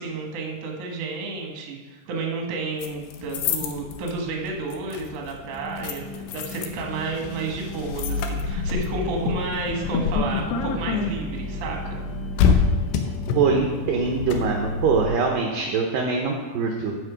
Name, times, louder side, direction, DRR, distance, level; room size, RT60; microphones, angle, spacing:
voice 1, 0.0-12.0, right 3 dB, 55° right, 1 dB, 1.9 m, -31 dB
sound 1, 2.8-15.1, left 5 dB, 80° left, 2.8 m, -27 dB
sound 2, 5.5-13.6, left 2 dB, 30° left, 1.1 m, -40 dB
voice 2, 13.3-17.0, right 5 dB, 75° right, 1 dB, 2.1 m, -23 dB
14.5 x 5.3 x 5.1 m, 1.3 s
omnidirectional pair, 5.0 m